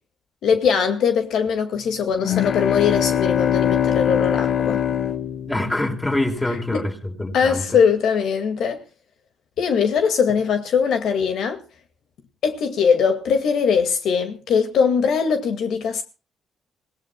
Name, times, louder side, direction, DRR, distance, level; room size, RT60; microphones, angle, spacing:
voice 1, 0.4-4.8 6.7-6.8 7.3-8.8 9.6-11.6 12.4-16.0, left 6 dB, 75° left, 2.1 m, -21 dB
sound 1, 2.1-6.2, left 10 dB, 60° left, 0.9 m, -22 dB
voice 2, 5.5-7.8, left 1 dB, 15° left, 4.8 m, -25 dB
26.5 x 17.5 x 2.3 m
cardioid pair, 90°, 0 cm